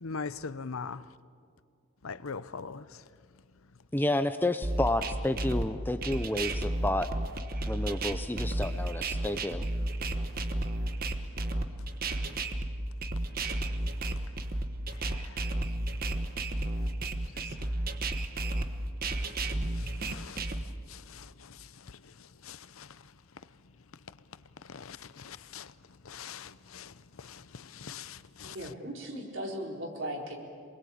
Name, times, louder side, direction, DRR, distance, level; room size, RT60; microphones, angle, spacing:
voice 1, 0.0-1.0 2.0-2.9 12.1-12.4 15.1-15.3 19.8-20.4 20.9-21.6 22.4-22.9 24.7-25.7 26.1-26.9 27.2-28.6, left 5 dB, 80° left, 0.8 m, -42 dB
voice 2, 3.9-7.1 7.7-9.7, left 1 dB, 10° left, 0.6 m, -30 dB
sound 1, 4.6-20.6, right 1 dB, 45° right, 1.2 m, -32 dB
voice 3, 28.4-30.4, equal, 60° right, 4.3 m, -37 dB
27.5 x 21.0 x 8.7 m
head